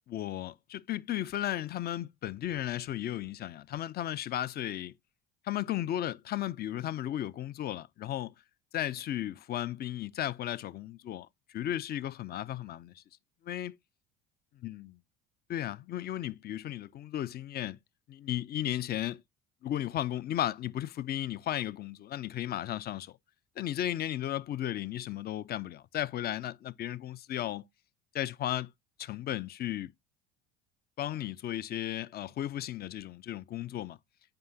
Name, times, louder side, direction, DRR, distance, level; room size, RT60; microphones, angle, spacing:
voice 1, 0.1-4.9 5.4-8.3 8.7-13.0 13.4-13.8 14.6-15.0 15.5-17.8 18.1-19.2 19.6-23.2 23.6-27.6 28.1-28.7 29.0-29.9 31.0-34.0, left 12 dB, 35° left, 0.4 m, -35 dB
7.6 x 4.8 x 2.7 m
hypercardioid pair, 75°, 29 cm